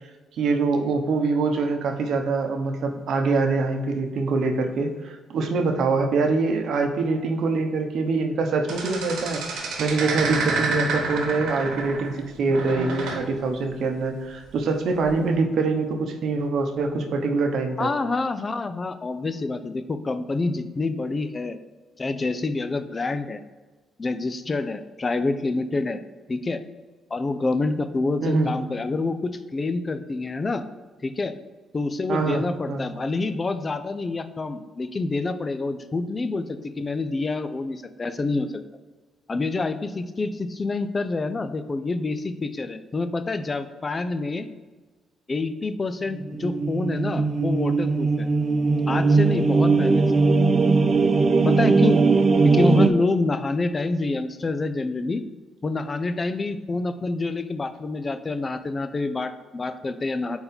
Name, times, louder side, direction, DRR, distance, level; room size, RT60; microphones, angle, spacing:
voice 1, 0.4-17.9 28.2-28.5 32.1-32.8, right 3 dB, 70° right, 4 dB, 0.9 m, -24 dB
sound 1, 8.7-12.2 12.5-13.2 15.0-15.2, right 3 dB, 90° right, 1.3 m, -29 dB
voice 2, 17.8-21.6 22.0-23.4 24.0-26.0 26.3-26.6 27.1-30.6 31.0-31.3 31.7-38.6 39.3-44.5 45.3-48.3 48.9-50.0 51.4-52.0 52.4-55.2 55.6-60.4, left 3 dB, 30° left, 10 dB, 0.5 m, -27 dB
sound 2, 46.1-52.9, right 4 dB, 35° right, 0.5 m, -19 dB
4.6 x 4.3 x 5.2 m, 1.3 s
cardioid pair, 90°, 0 cm